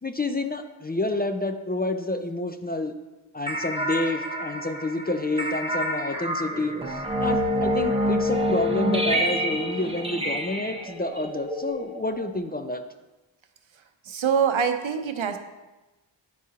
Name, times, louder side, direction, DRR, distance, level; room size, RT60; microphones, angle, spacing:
voice 1, 0.0-2.9 3.3-12.8, left 2 dB, 20° left, 7 dB, 0.4 m, -29 dB
sound 1, 3.5-12.4, equal, 10° right, 0.8 m, -27 dB
voice 2, 14.0-15.4, right 7 dB, 80° right, 6 dB, 0.7 m, -24 dB
10.0 x 4.7 x 2.8 m, 1.1 s
wide cardioid pair, 55°, 47 cm